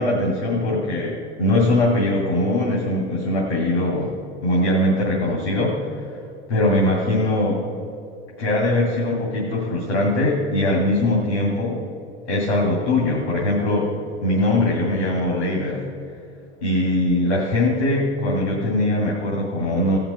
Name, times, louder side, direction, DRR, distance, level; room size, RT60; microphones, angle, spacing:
voice 1, 0.0-4.1 4.4-5.8 6.5-7.6 8.4-11.8 12.3-13.9 14.2-15.8 16.6-20.0, left 1 dB, 85° left, -3 dB, 2.5 m, -21 dB
16.5 x 5.9 x 5.6 m, 2.6 s
hypercardioid pair, 95°, 33 cm